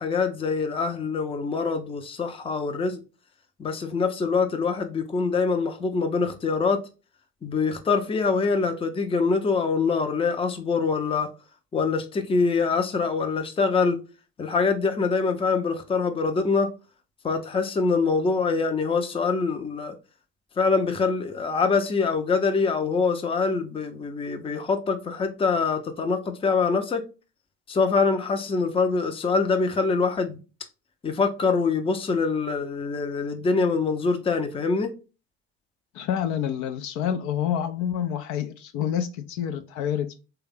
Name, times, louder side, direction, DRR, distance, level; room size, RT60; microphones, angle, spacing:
voice 1, 0.0-3.0 3.6-6.8 7.4-11.3 11.7-14.0 14.4-16.7 17.2-19.9 20.6-27.0 27.7-30.4 31.0-34.9, left 4 dB, 15° left, 0.6 m, -24 dB
voice 2, 35.9-40.1, left 9 dB, 60° left, 0.6 m, -28 dB
3.2 x 2.3 x 3.5 m
hypercardioid pair, 75°, 35 cm